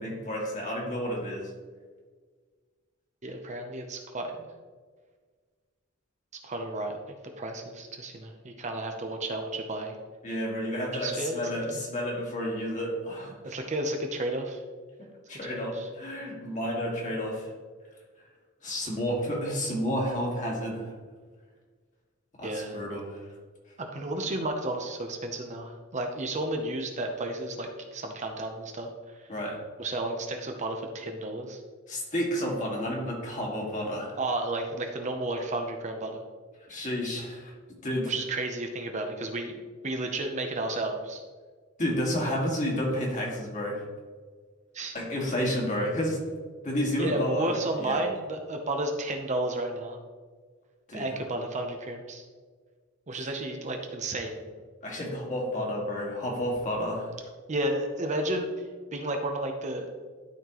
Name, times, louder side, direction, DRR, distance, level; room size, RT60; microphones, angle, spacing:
voice 1, 0.0-1.5 10.2-13.4 15.0-17.5 18.6-20.9 22.4-23.2 29.3-29.6 31.9-34.2 36.7-37.5 37.8-38.1 41.8-43.8 44.9-46.2 46.6-48.0 50.9-51.1 54.8-57.1, equal, 40° left, -3 dB, 2.0 m, -31 dB
voice 2, 3.2-4.5 6.4-10.0 11.0-11.4 11.7-11.8 13.4-14.6 15.5-15.9 22.4-22.8 23.8-29.3 29.8-31.6 34.2-36.2 38.1-41.2 44.7-44.9 47.0-50.0 50.9-52.2 53.1-54.4 57.5-58.5 58.9-59.9, right 2 dB, 35° right, 3 dB, 0.7 m, -32 dB
12.0 x 4.3 x 3.0 m, 1.5 s
head